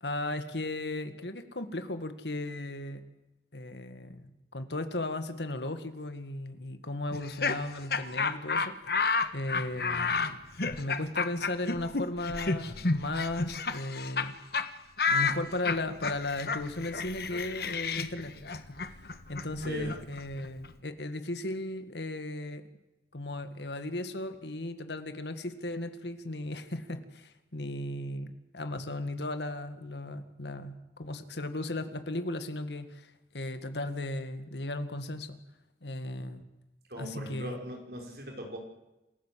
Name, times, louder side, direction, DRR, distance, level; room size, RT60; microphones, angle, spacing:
voice 1, 0.0-3.0 3.5-8.7 9.3-10.4 10.8-14.4 15.1-18.8 19.3-22.6 23.1-33.1 33.3-35.4 35.8-36.4 37.0-37.6, left 2 dB, 75° left, 9 dB, 2.1 m, -36 dB
Laughter, 7.1-14.3 14.5-14.7 15.0-20.7, left 4 dB, 60° left, 1.4 m, -31 dB
voice 2, 19.6-19.9 36.9-38.6, equal, 60° right, 2 dB, 5.5 m, -39 dB
27.5 x 16.0 x 7.7 m, 0.98 s
head